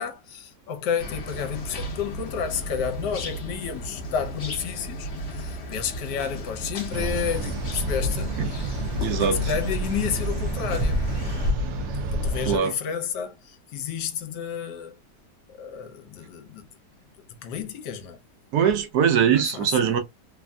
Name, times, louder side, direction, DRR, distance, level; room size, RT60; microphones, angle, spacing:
voice 1, 0.0-8.6 9.2-11.0 12.1-15.0 15.5-16.7 17.4-18.2 19.3-19.9, left 7 dB, 70° left, 1.3 m, -31 dB
sound 1, 1.0-11.5, equal, 50° left, 0.9 m, -35 dB
sound 2, 6.9-12.6, equal, 80° right, 0.6 m, -28 dB
voice 2, 9.0-9.5 12.5-12.8 18.5-20.0, right 8 dB, 65° right, 1.2 m, -22 dB
3.3 x 2.5 x 2.2 m
omnidirectional pair, 1.9 m